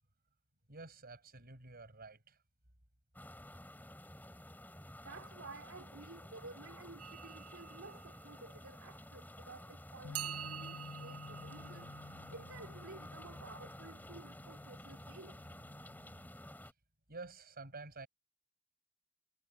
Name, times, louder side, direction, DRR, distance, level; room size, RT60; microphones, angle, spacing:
voice 1, 0.7-2.4 17.1-18.1, right 3 dB, 45° right, 6.4 m, -50 dB
sound 1, 3.1-16.7, left 1 dB, 10° left, 3.6 m, -52 dB
voice 2, 5.0-11.9 12.3-15.5, right 3 dB, 65° right, 3.1 m, -53 dB
sound 2, 7.0-9.4 10.1-14.0, right 10 dB, 85° right, 0.9 m, -49 dB
Bass guitar, 10.0-16.3, left 4 dB, 75° left, 0.8 m, -53 dB
head